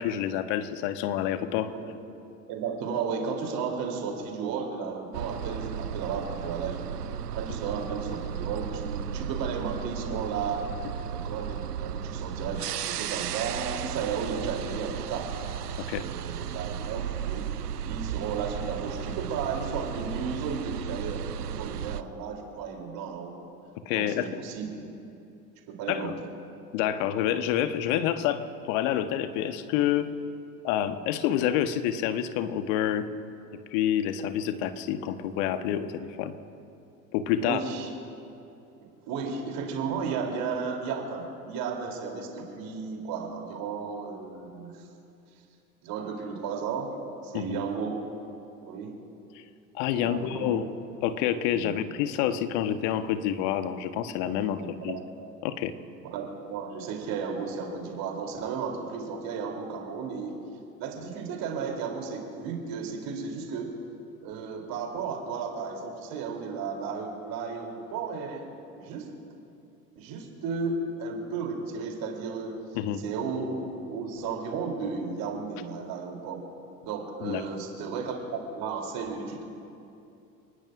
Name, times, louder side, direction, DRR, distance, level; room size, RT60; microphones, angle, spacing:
voice 1, 0.0-1.7 15.8-16.1 23.9-24.3 25.9-26.2 26.7-30.1 30.6-33.1 33.7-36.3 37.1-37.6 47.3-47.6 49.3-49.4 49.7-50.7 51.0-55.0 55.4-55.7 72.7-73.0 77.2-77.4, left 10 dB, 50° left, 10 dB, 1.3 m, -28 dB
voice 2, 2.5-7.0 7.3-10.7 11.1-15.3 16.0-17.5 17.8-23.3 23.9-24.9 25.7-26.1 37.4-37.9 39.1-44.7 45.8-46.9 47.2-48.0 48.6-48.9 49.9-50.6 51.5-51.8 54.8-55.0 56.1-60.3 60.8-63.7 64.2-68.4 68.8-69.1 69.9-72.6 73.0-76.4 76.8-78.2 78.5-79.4, right 5 dB, 45° right, 1 dB, 3.4 m, -34 dB
sound 1, 5.1-22.0, right 9 dB, 75° right, 0.7 m, -35 dB
29.0 x 19.5 x 2.6 m, 2.7 s
figure-of-eight pair, 80°, 47 cm